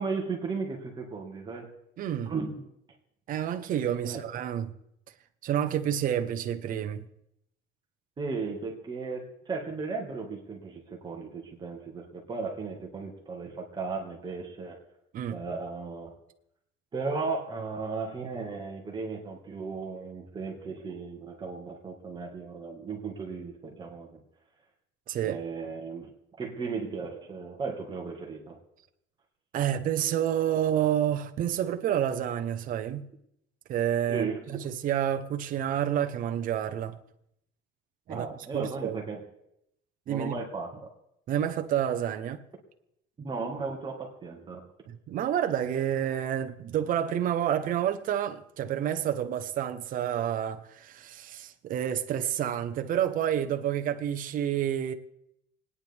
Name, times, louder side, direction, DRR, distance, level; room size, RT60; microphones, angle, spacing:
voice 1, 0.0-1.7 2.3-2.6 4.0-4.2 8.2-14.8 15.3-16.1 16.9-24.2 25.2-26.1 26.4-28.6 34.1-34.6 38.1-39.2 40.1-40.9 43.2-44.7, right 4 dB, 20° right, 1.9 m, -35 dB
voice 2, 2.0-2.3 3.3-4.7 5.4-7.1 15.1-15.4 25.1-25.4 29.5-33.0 33.7-37.0 38.1-38.3 38.5-39.0 40.1-40.4 41.3-42.4 44.9-54.9, right 10 dB, 45° right, 1.0 m, -29 dB
29.0 x 9.8 x 3.5 m
cardioid pair, 165°, 20 cm